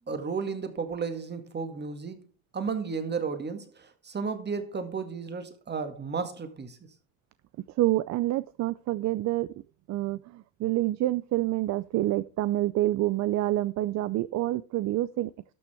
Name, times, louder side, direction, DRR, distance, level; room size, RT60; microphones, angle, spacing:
voice 1, 0.1-2.2 2.5-6.8, right 5 dB, 25° right, 2.0 m, -33 dB
voice 2, 7.8-9.5 9.9-15.3, right 15 dB, 45° right, 0.5 m, -27 dB
12.5 x 6.1 x 4.4 m
supercardioid pair, 105°, 40 cm